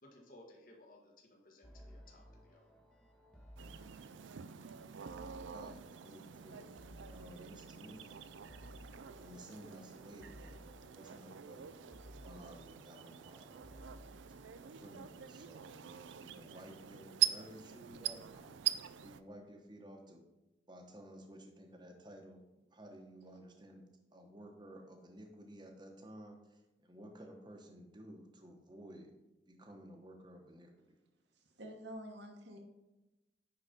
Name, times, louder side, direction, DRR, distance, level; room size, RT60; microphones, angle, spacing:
voice 1, 0.0-2.8, left 1 dB, 45° left, 0 dB, 1.5 m, -60 dB
sound 1, 1.6-15.0, equal, 5° left, 1.4 m, -58 dB
sound 2, 3.6-19.2, right 12 dB, 85° right, 0.4 m, -43 dB
voice 2, 5.5-6.7 7.0-8.2 9.1-11.7 12.1-13.9 14.6-15.7 16.2-18.5 19.0-20.2 20.7-22.4 22.7-23.8 24.1-29.1 29.5-30.7, equal, 25° right, 2 dB, 1.0 m, -54 dB
voice 3, 31.6-32.6, equal, 70° right, 3 dB, 1.2 m, -47 dB
9.7 x 4.0 x 5.1 m, 1.0 s
head